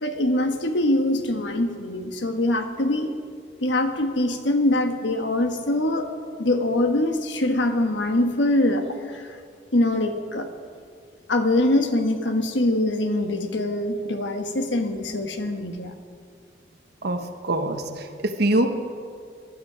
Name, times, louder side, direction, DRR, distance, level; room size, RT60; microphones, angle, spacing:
voice 1, 0.0-3.1 3.6-6.1 6.4-9.4 9.7-10.5 11.3-15.9, left 1 dB, 75° left, 6 dB, 1.3 m, -23 dB
voice 2, 17.4-18.7, right 1 dB, 60° right, 6 dB, 1.2 m, -23 dB
19.0 x 12.0 x 5.0 m, 2.2 s
head